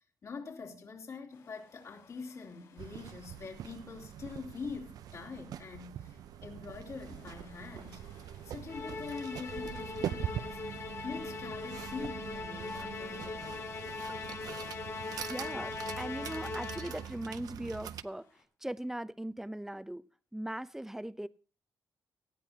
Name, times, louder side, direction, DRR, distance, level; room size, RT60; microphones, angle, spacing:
voice 1, 0.0-8.0 8.4-10.6 11.0-13.6, left 4 dB, 55° left, 3.3 m, -44 dB
sound 1, 1.3-18.4, left 5 dB, 85° left, 5.6 m, -65 dB
sound 2, 2.8-18.0, right 10 dB, 75° right, 0.6 m, -43 dB
Musical instrument, 8.7-17.2, left 4 dB, 40° left, 1.1 m, -41 dB
voice 2, 15.3-18.3 18.6-20.0 20.3-21.3, right 1 dB, 5° right, 0.7 m, -39 dB
18.5 x 13.5 x 2.9 m
cardioid pair, 85°, 6 cm